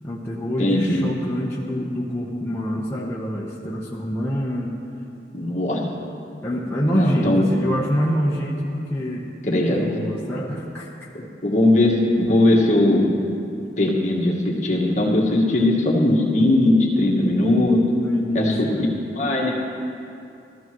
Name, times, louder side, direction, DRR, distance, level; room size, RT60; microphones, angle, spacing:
voice 1, 0.0-4.8 6.4-9.3 9.7-10.9 18.0-18.8, equal, 15° left, -6 dB, 0.9 m, -26 dB
voice 2, 0.6-1.1 5.3-5.8 6.9-7.5 9.5-9.8 11.1-13.1 13.8-17.8 18.3-18.7 19.2-19.5, left 1 dB, 45° left, -3 dB, 1.7 m, -19 dB
14.5 x 14.5 x 3.1 m, 2.6 s
head